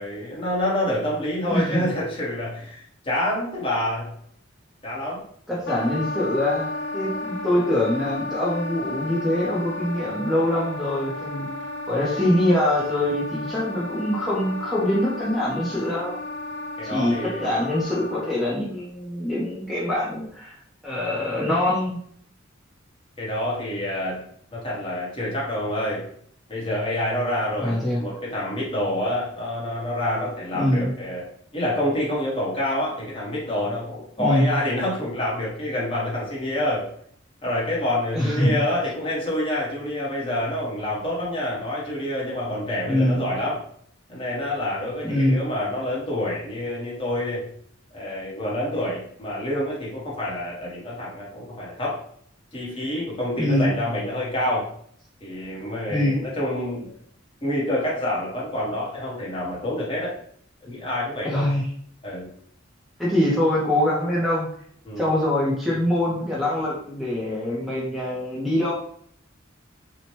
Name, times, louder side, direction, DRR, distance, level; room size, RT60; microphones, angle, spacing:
voice 1, 0.0-4.1 4.8-5.2 5.8-6.0 7.1-7.2 16.8-17.5 23.2-24.2 24.5-26.0 26.5-31.3 31.5-36.9 37.4-43.6 44.1-47.4 47.9-52.0 52.5-54.7 55.2-56.9 57.4-60.1 60.6-61.5 62.0-62.3 64.8-65.1, left 1 dB, 30° left, -5 dB, 1.0 m, -27 dB
voice 2, 1.5-1.8 5.5-11.5 11.9-16.2 16.8-20.5 20.8-22.0 27.6-28.0 30.5-30.9 34.2-34.5 38.1-38.6 42.9-43.3 45.0-45.4 53.4-53.7 55.9-56.2 61.2-61.7 63.0-64.5 65.0-68.7, left 1 dB, ahead, -7 dB, 0.5 m, -24 dB
Wind instrument woodwind instrument, 5.7-18.6, left 2 dB, 60° left, 0.3 m, -33 dB
2.8 x 2.1 x 2.9 m, 0.64 s
head